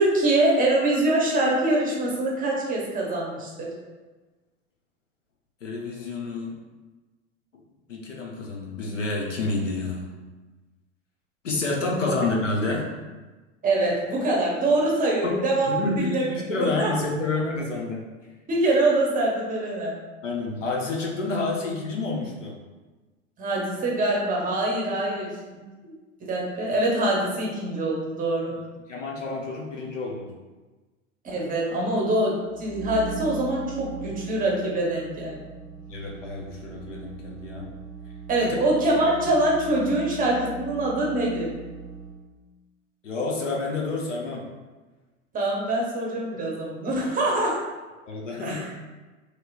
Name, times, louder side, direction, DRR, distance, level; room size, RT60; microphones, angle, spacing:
voice 1, 0.0-3.7 12.1-12.2 13.6-16.2 16.6-17.0 18.5-19.9 23.4-25.6 25.8-25.9 26.2-28.5 31.2-35.5 38.3-41.5 45.3-47.6 48.4-48.7, right 2 dB, 25° right, -2 dB, 0.8 m, -24 dB
voice 2, 5.6-6.6 7.9-10.0 11.4-12.9 15.2-15.3 15.7-18.1 20.2-22.6 28.9-30.3 35.9-37.7 38.4-38.6 43.0-44.5 48.1-48.6, left 3 dB, 85° left, -1 dB, 0.7 m, -29 dB
sound 1, 32.4-42.3, right 5 dB, 10° left, 1.3 m, -40 dB
3.0 x 2.8 x 2.4 m, 1.2 s
hypercardioid pair, 90°, 36 cm